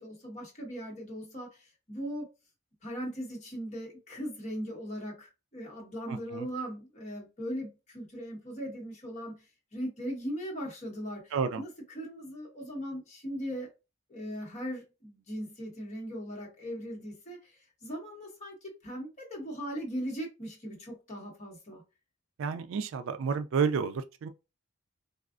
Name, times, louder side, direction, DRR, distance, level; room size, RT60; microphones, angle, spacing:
voice 1, 0.0-2.3 2.8-9.4 9.7-13.7 14.1-21.8, equal, 35° left, 1.1 m, -39 dB
voice 2, 6.1-6.5 11.3-11.6 22.4-24.3, right 6 dB, 65° right, 0.3 m, -30 dB
3.4 x 2.4 x 2.4 m
head